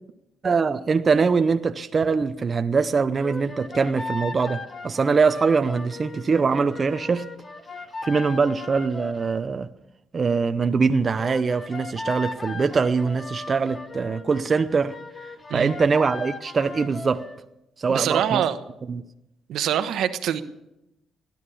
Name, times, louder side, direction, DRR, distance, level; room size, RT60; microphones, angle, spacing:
voice 1, 0.4-7.2 8.0-9.7 10.1-14.9 15.5-17.2 17.8-18.4 18.9-19.0, right 5 dB, 40° right, 0.6 m, -23 dB
sound 1, 3.2-9.4 11.2-17.4, left 3 dB, 30° left, 1.5 m, -37 dB
voice 2, 17.9-18.6 19.5-20.4, right 10 dB, 80° right, 1.1 m, -24 dB
17.0 x 11.0 x 7.0 m
cardioid pair, 90°, 0 cm